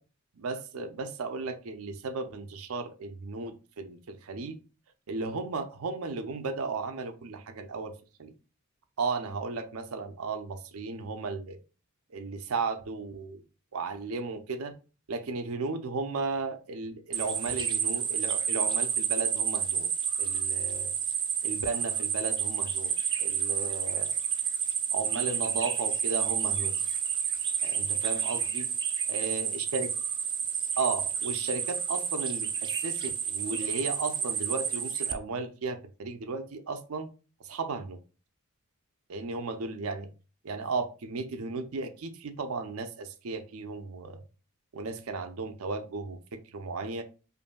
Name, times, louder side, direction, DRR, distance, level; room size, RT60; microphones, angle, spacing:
voice 1, 0.3-4.6 5.1-7.9 8.2-8.3 9.0-11.6 12.1-13.4 13.7-14.7 15.1-19.9 20.2-20.9 21.4-22.9 23.2-24.1 24.9-26.8 27.6-28.7 29.1-29.9 30.8-37.1 37.4-38.0 39.1-40.1 40.4-44.2 44.7-46.2 46.5-47.0, right 4 dB, 75° right, 8 dB, 0.5 m, -35 dB
sound 1, 17.1-35.1, right 7 dB, 20° right, 0.3 m, -30 dB
5.2 x 2.6 x 2.2 m, 0.34 s
head